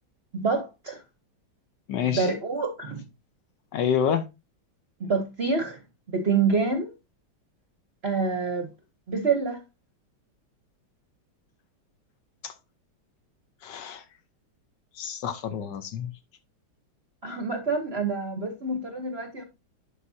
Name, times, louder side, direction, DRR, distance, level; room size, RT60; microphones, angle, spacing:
voice 1, 0.3-1.0 2.1-3.0 5.0-5.8 6.1-6.9 8.0-8.7 9.1-9.6 17.2-19.4, right 4 dB, 45° right, 0.9 m, -27 dB
voice 2, 1.9-2.3 3.7-4.3 12.4-12.5 13.6-14.0 15.0-16.1, left 8 dB, 70° left, 1.2 m, -28 dB
11.0 x 4.9 x 2.7 m
omnidirectional pair, 2.2 m